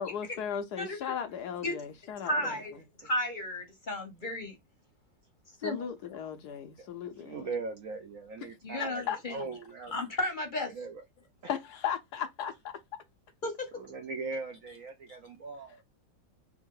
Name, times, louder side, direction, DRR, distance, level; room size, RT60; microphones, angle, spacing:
voice 1, 0.0-2.6 5.6-7.5 8.4-8.5 8.8-9.2 11.5-12.7, left 8 dB, 70° left, 1.1 m, -36 dB
voice 2, 2.2-2.7 3.0-4.5 5.6-5.8 8.6-9.4 9.9-10.7 13.4-13.5, left 1 dB, 35° left, 0.9 m, -33 dB
voice 3, 7.2-9.9 10.7-11.0 13.7-15.8, right 4 dB, 60° right, 0.9 m, -39 dB
3.5 x 3.0 x 3.7 m
omnidirectional pair, 2.0 m